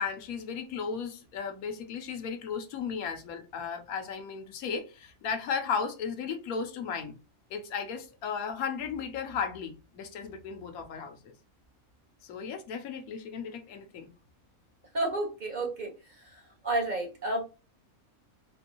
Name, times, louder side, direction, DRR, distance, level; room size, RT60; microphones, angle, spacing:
voice 1, 0.0-7.2 7.5-11.3 12.2-14.1, left 6 dB, 85° left, 1.2 m, -35 dB
voice 2, 14.9-15.9 16.6-17.4, right 2 dB, 40° right, 0.9 m, -30 dB
3.8 x 2.6 x 2.8 m
omnidirectional pair, 1.5 m